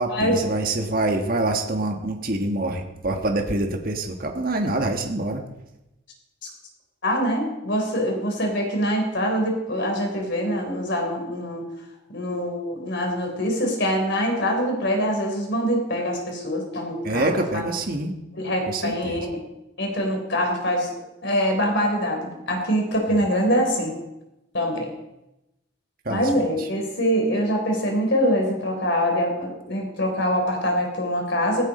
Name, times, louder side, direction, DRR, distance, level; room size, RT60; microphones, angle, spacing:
voice 1, 0.0-5.4 17.0-18.1 18.7-19.3 23.1-23.2 26.0-26.7, right 2 dB, 45° right, 3 dB, 1.4 m, -26 dB
voice 2, 7.0-11.6 12.1-17.6 18.4-19.4 19.8-20.9 21.2-24.0 24.5-24.9 26.1-31.6, equal, 55° left, 2 dB, 4.0 m, -24 dB
16.5 x 15.5 x 4.3 m, 0.94 s
head